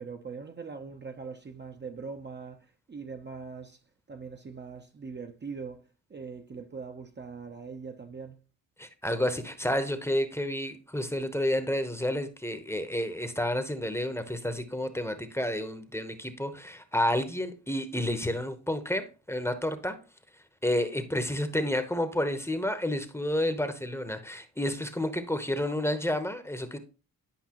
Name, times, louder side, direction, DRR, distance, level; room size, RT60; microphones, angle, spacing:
voice 1, 0.0-3.8 4.1-8.4, right 5 dB, 30° right, 0.7 m, -42 dB
voice 2, 8.8-20.0 20.6-26.8, left 1 dB, 5° left, 0.9 m, -30 dB
10.5 x 5.3 x 2.9 m
cardioid pair, 95°, 36 cm